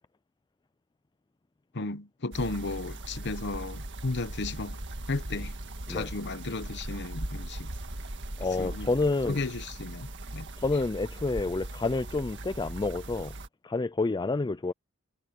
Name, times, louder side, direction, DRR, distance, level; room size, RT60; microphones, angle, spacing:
voice 1, 1.7-4.8 5.1-5.6 5.9-7.7 8.6-8.9 9.3-10.5, left 3 dB, 55° left, 1.0 m, -34 dB
sound 1, 2.3-13.5, right 1 dB, 55° right, 1.8 m, -39 dB
voice 2, 8.4-9.4 10.6-13.3 13.6-14.7, left 3 dB, 20° left, 0.4 m, -29 dB
head